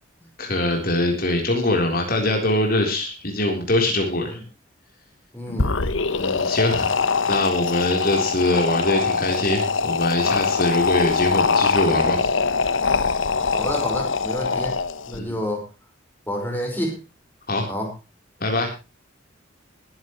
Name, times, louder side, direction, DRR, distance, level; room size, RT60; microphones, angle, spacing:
voice 1, 0.4-4.4 6.2-6.9 7.3-12.2 15.1-15.3 17.5-17.7 18.4-18.7, left 1 dB, 45° left, 2 dB, 3.6 m, -23 dB
voice 2, 5.3-5.7 13.5-14.8 15.1-15.6 16.3-17.0 17.7-17.9, equal, 10° left, 1 dB, 5.1 m, -28 dB
sound 1, 5.5-15.2, left 4 dB, 75° left, 1.0 m, -23 dB
21.0 x 11.0 x 3.1 m, 0.29 s
head